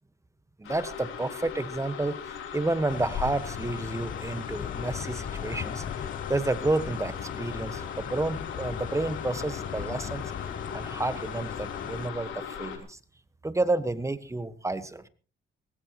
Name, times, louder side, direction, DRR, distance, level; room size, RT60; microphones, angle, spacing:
sound 1, 0.6-12.8, left 7 dB, 75° left, 3.7 m, -38 dB
voice 1, 0.6-10.2 10.7-13.0 13.4-15.1, right 2 dB, 15° right, 12 dB, 1.4 m, -30 dB
sound 2, 2.9-12.1, left 8 dB, 45° left, 0.6 m, -38 dB
19.5 x 19.0 x 3.1 m, 0.36 s
cardioid pair, 90°, 20 cm